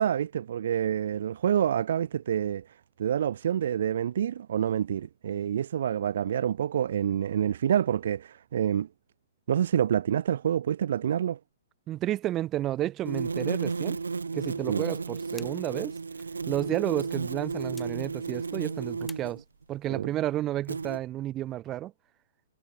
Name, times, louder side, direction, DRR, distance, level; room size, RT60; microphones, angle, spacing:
voice 1, 0.0-2.7 3.0-8.9 9.5-11.4 14.7-14.8 19.9-20.1, right 9 dB, 65° right, 0.7 m, -27 dB
voice 2, 11.9-14.0 14.3-15.9 16.5-19.4 19.7-21.9, right 13 dB, 25° right, 2.7 m, -31 dB
sound 1, 13.0-19.4 20.7-21.0, right 4 dB, 90° right, 1.5 m, -33 dB
sound 2, 18.2-20.1, left 3 dB, 5° left, 5.6 m, -56 dB
hypercardioid pair, 125°, 0 cm